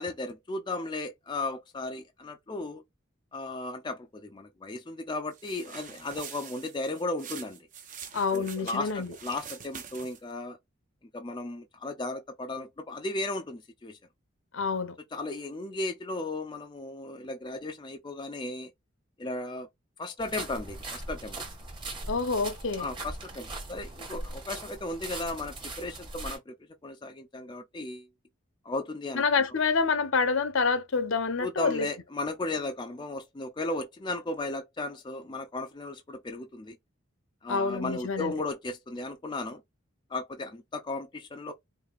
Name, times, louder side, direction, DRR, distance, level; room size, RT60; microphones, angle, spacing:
voice 1, 0.0-2.8 3.3-7.7 8.3-10.6 11.1-14.0 15.1-18.7 19.2-19.7 20.0-21.4 22.8-26.5 26.8-28.1 28.6-29.2 31.4-36.8 37.4-39.6 40.1-41.5, left 2 dB, 20° left, 0.4 m, -35 dB
sound 1, 5.3-10.3, right 7 dB, 40° right, 0.7 m, -45 dB
voice 2, 8.1-9.1 14.5-14.9 22.1-22.9 29.1-31.9 37.5-38.3, left 4 dB, 70° left, 0.7 m, -27 dB
sound 2, 20.2-26.4, right 2 dB, 25° right, 1.1 m, -40 dB
4.7 x 2.7 x 2.3 m
head